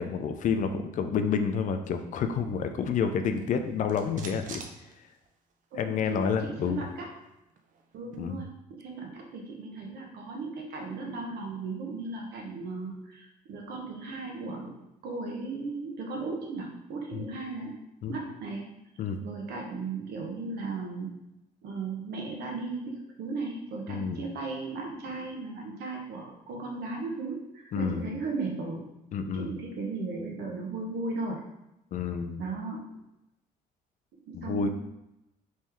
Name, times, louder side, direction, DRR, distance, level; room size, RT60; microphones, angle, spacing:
voice 1, 0.0-4.6 5.8-6.8 8.2-8.4 17.1-17.3 18.0-18.2 19.0-19.2 23.9-24.2 27.7-28.0 29.1-29.5 31.9-32.4 34.3-34.7, left 6 dB, 50° left, 7 dB, 0.4 m, -29 dB
sound 1, 3.2-5.6 6.0-6.1 6.3-8.3, right 5 dB, 50° right, 0.5 m, -48 dB
voice 2, 5.7-7.1 7.9-17.7 18.1-18.7 19.2-21.1 21.6-28.9 29.3-31.4 32.4-32.9 34.2-34.7, right 3 dB, 75° right, 0 dB, 0.9 m, -36 dB
3.5 x 3.1 x 3.0 m, 0.89 s
cardioid pair, 110°, 17 cm